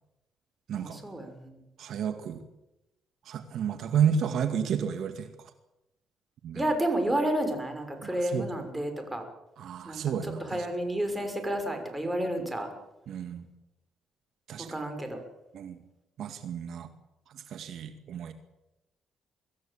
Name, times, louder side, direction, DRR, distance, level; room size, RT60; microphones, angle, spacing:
voice 1, 0.7-1.4 6.6-9.2 9.8-12.7 14.7-15.2, right 1 dB, 15° right, 6 dB, 6.2 m, -31 dB
voice 2, 1.8-2.4 3.3-5.3 6.4-6.6 8.0-8.5 9.6-10.7 13.1-13.4 14.5-14.7 15.5-15.8 16.2-16.9 17.5-18.3, right 8 dB, 70° right, 8 dB, 2.2 m, -31 dB
24.5 x 15.5 x 8.8 m, 0.92 s
cardioid pair, 90°, 0 cm